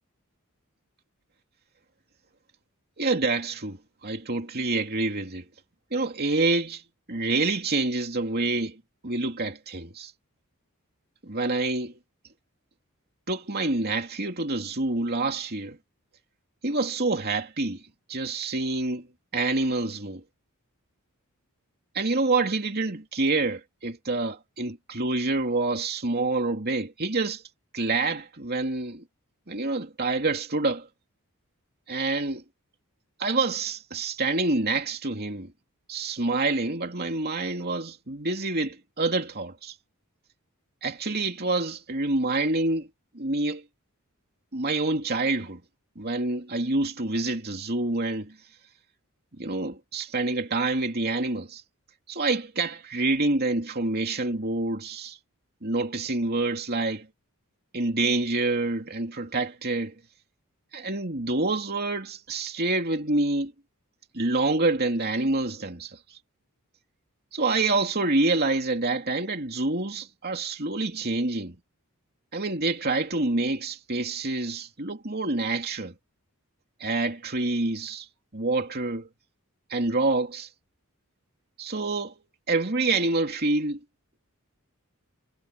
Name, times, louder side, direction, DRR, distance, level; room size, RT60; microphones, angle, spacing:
voice 1, 3.0-5.4 5.9-6.8 7.1-10.1 11.2-12.0 13.3-15.8 16.6-17.8 18.1-19.1 19.3-20.2 21.9-27.4 27.7-29.0 29.5-30.9 31.9-32.4 33.2-35.5 35.9-39.7 40.8-42.9 43.1-43.6 44.5-45.6 46.0-48.4 49.4-51.6 52.1-55.2 55.6-57.1 57.7-59.9 60.7-63.5 64.1-66.0 67.3-71.5 72.3-75.9 76.8-78.1 78.3-79.1 79.7-80.5 81.6-82.1 82.5-83.8, right 2 dB, 45° right, 2.9 m, -27 dB
head